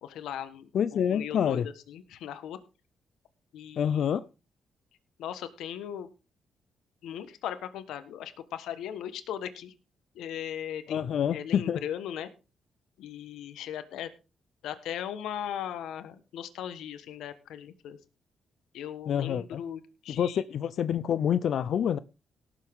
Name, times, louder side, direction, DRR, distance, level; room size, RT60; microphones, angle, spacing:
voice 1, 0.0-2.6 3.5-4.1 5.2-6.1 7.0-9.7 10.1-11.0 11.3-12.3 13.0-14.1 14.6-18.0 18.7-20.4, left 10 dB, 90° left, 1.3 m, -38 dB
voice 2, 0.7-1.7 3.8-4.2 10.9-11.8 19.1-19.6 20.1-22.0, left 8 dB, 70° left, 0.6 m, -27 dB
18.0 x 7.4 x 3.7 m
cardioid pair, 85°, 0 cm